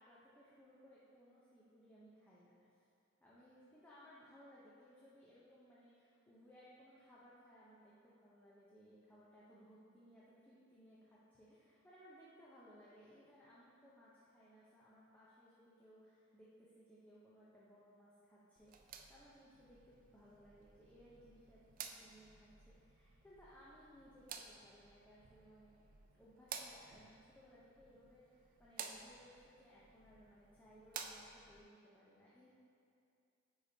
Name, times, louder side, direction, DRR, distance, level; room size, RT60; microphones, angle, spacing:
voice 1, 0.0-2.8 3.2-25.8 26.1-32.5, equal, 10° left, -8 dB, 0.7 m, -63 dB
sound 1, 18.6-31.6, right 7 dB, 40° right, 0.4 m, -54 dB
9.4 x 4.7 x 2.8 m, 2.5 s
head